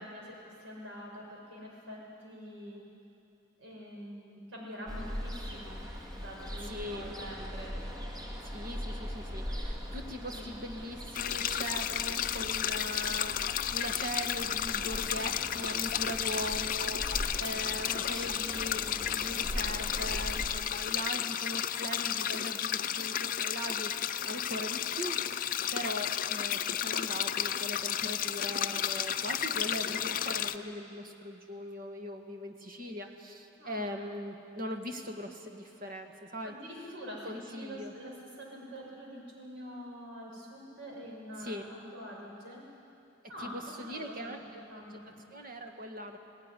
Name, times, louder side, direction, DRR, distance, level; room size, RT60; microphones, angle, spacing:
voice 1, 0.0-2.8 3.6-7.8 10.3-10.5 17.6-18.1 29.8-30.6 33.6-33.9 36.4-42.6 43.3-44.3 44.7-45.1, equal, 90° right, -3 dB, 6.4 m, -45 dB
Ocean, 4.9-20.5, equal, 20° right, 2.1 m, -41 dB
voice 2, 6.7-7.1 8.4-25.4 25.7-36.5 37.2-37.9 41.4-41.6 43.4-44.6 45.3-46.2, equal, 50° right, 4 dB, 1.7 m, -40 dB
sound 1, 11.1-30.6, left 10 dB, 45° left, 0.5 m, -33 dB
18.5 x 17.5 x 9.9 m, 2.7 s
head